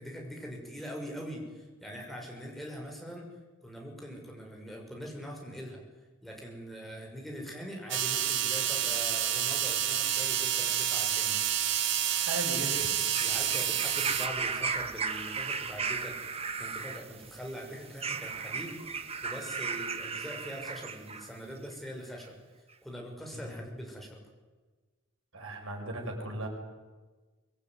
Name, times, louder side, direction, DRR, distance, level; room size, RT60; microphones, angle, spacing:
voice 1, 0.0-3.3 3.6-5.8 6.2-11.4 13.2-18.8 19.2-22.3 22.8-24.2, equal, ahead, 0 dB, 6.3 m, -42 dB
sound 1, 7.9-14.3, right 10 dB, 60° right, 1.9 m, -29 dB
voice 2, 12.1-12.9 23.3-23.5 25.3-26.5, right 1 dB, 75° right, 2 dB, 6.9 m, -37 dB
sound 2, 12.6-21.3 22.2-22.3, right 5 dB, 30° right, 1.6 m, -36 dB
25.0 x 21.0 x 9.7 m, 1.3 s
head